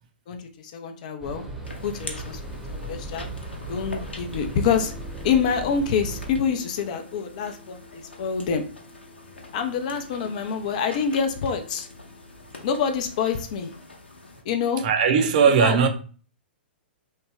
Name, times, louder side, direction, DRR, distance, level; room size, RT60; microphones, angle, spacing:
voice 1, 0.3-1.4 1.8-2.4 2.7-3.3 3.7-4.9 5.2-8.6 9.5-11.9 12.6-13.7 14.4-14.8 15.6-15.8, left 6 dB, 45° left, 0.5 m, -26 dB
sound 1, 1.2-6.3, right 2 dB, 5° right, 0.8 m, -36 dB
Drips on Stone, 1.6-14.4, left 2 dB, 75° left, 0.7 m, -44 dB
sound 2, 4.4-13.3, left 2 dB, 30° left, 0.9 m, -53 dB
voice 2, 14.8-15.9, right 6 dB, 45° right, 0.5 m, -18 dB
3.2 x 2.2 x 3.2 m
figure-of-eight pair, 110°, 6 cm